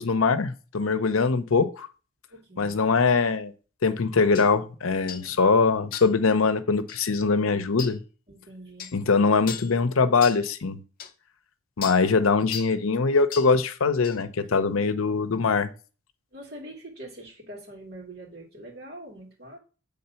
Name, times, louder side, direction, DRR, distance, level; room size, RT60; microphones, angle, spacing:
voice 1, 0.0-1.9 2.6-3.5 3.8-8.0 8.9-10.8 11.8-15.7, left 4 dB, 85° left, 12 dB, 0.7 m, -22 dB
voice 2, 2.3-2.9 5.0-5.3 8.3-8.9 14.2-15.0 16.3-19.6, right 1 dB, 50° right, -1 dB, 2.8 m, -44 dB
sound 1, 4.4-4.5 5.1-5.3 5.9-6.2 6.9-7.1 7.8-8.0 8.8-9.0 9.5-9.7 10.2-10.4 11.0-11.1 11.8-12.0 12.5-12.8 13.3-13.5 14.0-14.2, left 8 dB, 45° left, 0.6 m, -37 dB
7.8 x 3.7 x 5.7 m, 0.35 s
head